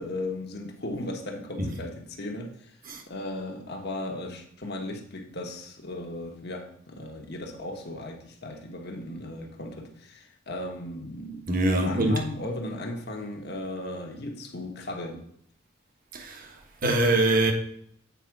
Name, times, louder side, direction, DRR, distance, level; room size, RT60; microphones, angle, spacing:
voice 1, 0.0-2.8 3.1-11.4 11.7-15.2, left 1 dB, 55° left, 1.2 m, -36 dB
voice 2, 11.5-12.2 16.1-16.5 16.8-17.5, right 2 dB, 45° right, 1.2 m, -23 dB
8.3 x 4.9 x 4.7 m
head